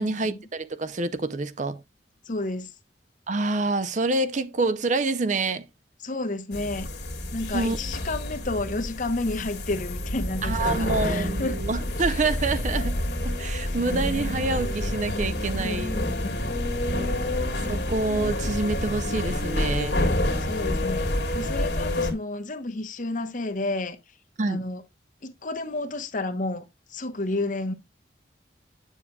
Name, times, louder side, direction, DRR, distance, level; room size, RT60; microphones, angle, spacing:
voice 1, 0.0-1.8 3.3-5.7 7.5-7.8 10.4-16.0 17.7-20.1 24.4-24.6, right 3 dB, 45° right, 0.6 m, -27 dB
voice 2, 2.3-2.7 6.0-6.9 7.3-11.6 12.0-12.2 13.7-13.8 15.5-16.0 20.4-21.1 21.3-24.0 24.5-24.8 25.2-27.7, left 2 dB, 45° left, 1.0 m, -31 dB
sound 1, 6.5-22.1, left 1 dB, 65° left, 1.9 m, -28 dB
8.4 x 7.1 x 2.3 m
head